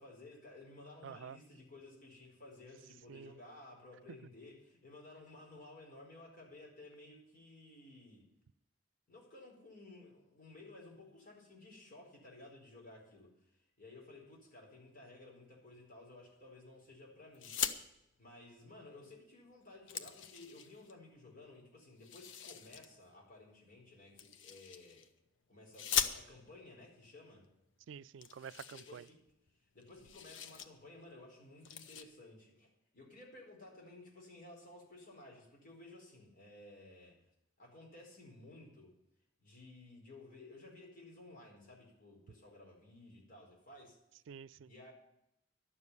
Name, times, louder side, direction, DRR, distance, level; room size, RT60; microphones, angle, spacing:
voice 1, 0.0-8.3 9.1-17.7 18.2-25.1 25.5-27.4 28.7-29.2 29.7-37.2 37.6-38.9 39.4-44.0 44.6-44.9, left 2 dB, 50° left, 4.6 m, -55 dB
voice 2, 1.0-1.4 3.1-3.4 27.9-29.0 44.3-44.7, right 7 dB, 75° right, 0.4 m, -49 dB
sound 1, 17.3-17.8 19.1-19.2 19.5-20.9 22.0-22.9 24.2-25.1 25.7-26.6 27.5-27.6 27.8-27.9 28.2-29.5 29.8-30.7 31.0-31.2 31.6-32.0, left 8 dB, 80° left, 0.9 m, -40 dB
11.5 x 7.2 x 9.6 m
head